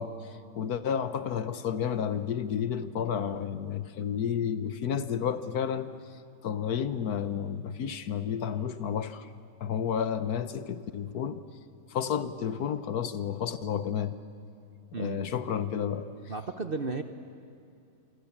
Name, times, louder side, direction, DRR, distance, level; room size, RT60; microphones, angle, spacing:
voice 1, 0.0-5.9 6.4-9.3 9.6-11.4 11.9-14.1 15.0-16.0, left 8 dB, 65° left, 12 dB, 1.4 m, -31 dB
voice 2, 14.9-15.3 16.3-17.0, right 4 dB, 45° right, 8 dB, 0.9 m, -33 dB
27.5 x 24.5 x 7.3 m, 2.6 s
omnidirectional pair, 1.8 m